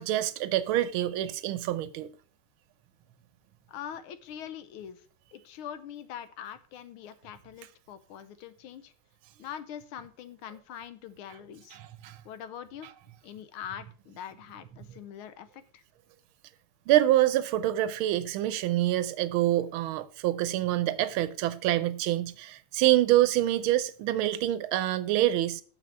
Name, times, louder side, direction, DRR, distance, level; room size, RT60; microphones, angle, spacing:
voice 1, 0.0-2.1 11.7-12.2 16.9-25.6, right 14 dB, 80° right, 1.4 m, -26 dB
voice 2, 3.7-5.0 5.3-8.9 9.4-11.8 12.2-12.9 13.2-15.8, left 9 dB, 80° left, 1.6 m, -43 dB
6.9 x 5.9 x 5.9 m
omnidirectional pair, 2.3 m